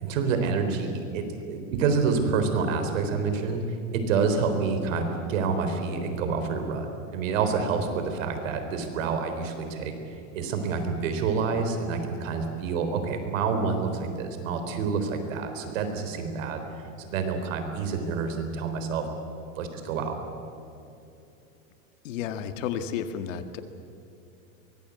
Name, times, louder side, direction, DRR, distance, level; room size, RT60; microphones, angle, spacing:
voice 1, 0.0-3.6 3.9-9.9 10.3-16.6 17.0-19.1 19.6-20.2, right 5 dB, 75° right, 7 dB, 3.9 m, -28 dB
voice 2, 22.0-23.6, left 8 dB, 70° left, 9 dB, 2.0 m, -32 dB
23.5 x 21.0 x 8.4 m, 2.7 s
supercardioid pair, 150°, 39 cm